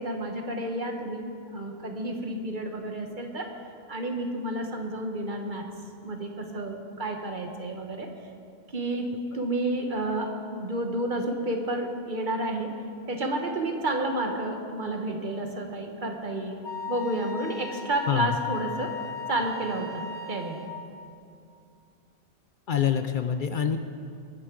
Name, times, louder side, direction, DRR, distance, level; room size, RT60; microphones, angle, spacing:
voice 1, 0.0-3.5 3.9-5.7 6.0-8.1 8.7-12.8 13.1-16.6 16.9-19.0 19.3-20.6, right 1 dB, 50° right, 3 dB, 1.3 m, -30 dB
Wind instrument woodwind instrument, 16.6-20.8, left 6 dB, 25° left, 1.1 m, -37 dB
voice 2, 22.7-23.8, left 8 dB, 55° left, 8 dB, 0.7 m, -25 dB
21.0 x 10.5 x 3.8 m, 2.4 s
omnidirectional pair, 1.1 m